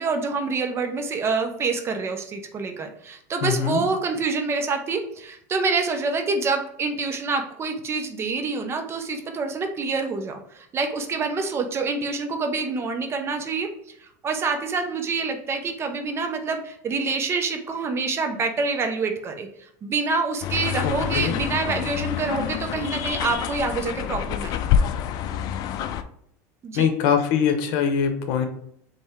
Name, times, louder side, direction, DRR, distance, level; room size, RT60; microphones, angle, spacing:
voice 1, 0.0-13.7 14.2-19.5 19.8-24.5 26.6-26.9, right 4 dB, 30° right, 5 dB, 0.7 m, -26 dB
voice 2, 3.4-3.8 20.8-21.3 26.7-28.5, left 7 dB, 65° left, 6 dB, 0.9 m, -23 dB
sound 1, 20.4-26.0, left 9 dB, 50° left, 0.4 m, -27 dB
4.2 x 3.4 x 3.5 m, 0.71 s
supercardioid pair, 125°, 9 cm